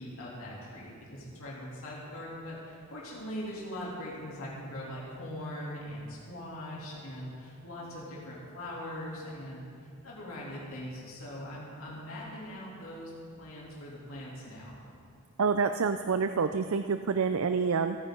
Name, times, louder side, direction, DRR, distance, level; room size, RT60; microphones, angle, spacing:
voice 1, 0.0-13.1 13.4-14.8, equal, 85° left, -6 dB, 3.2 m, -41 dB
voice 2, 15.4-18.0, right 5 dB, 75° right, 8 dB, 0.5 m, -27 dB
28.5 x 9.6 x 3.9 m, 2.3 s
head